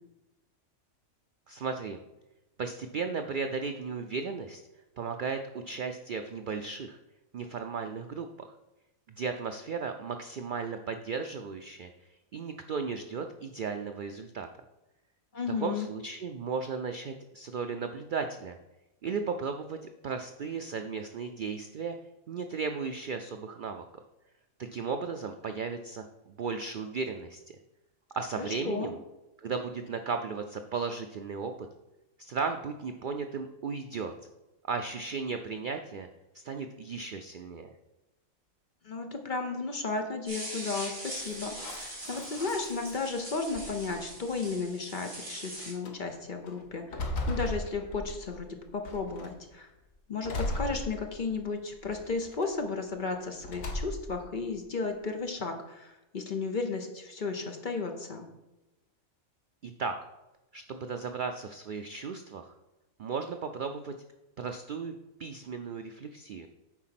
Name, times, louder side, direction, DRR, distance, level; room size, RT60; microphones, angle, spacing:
voice 1, 1.5-2.0 2.6-4.6 5.0-7.0 7.3-8.5 9.2-14.5 15.5-18.6 19.0-22.0 22.3-23.8 24.6-27.4 28.2-28.9 29.4-31.7 32.2-34.1 34.7-36.1 36.3-37.7 59.6-60.0 60.5-62.5 63.0-63.9 64.4-64.9 65.2-66.5, right 5 dB, 80° right, 6 dB, 0.4 m, -35 dB
voice 2, 15.3-15.9 28.4-28.9 38.8-47.0 47.3-49.7 50.1-58.2, left 4 dB, 40° left, 4 dB, 0.8 m, -34 dB
sound 1, 40.3-45.7, right 1 dB, 55° right, 3.0 m, -42 dB
sound 2, 41.2-43.1 43.5-44.3 45.0-45.1 45.6-45.9 46.5-48.4 48.9-49.4 50.2-51.4 51.9-52.5 53.4-54.2, left 1 dB, 70° left, 1.5 m, -37 dB
9.2 x 4.1 x 5.8 m, 1.0 s
omnidirectional pair, 1.4 m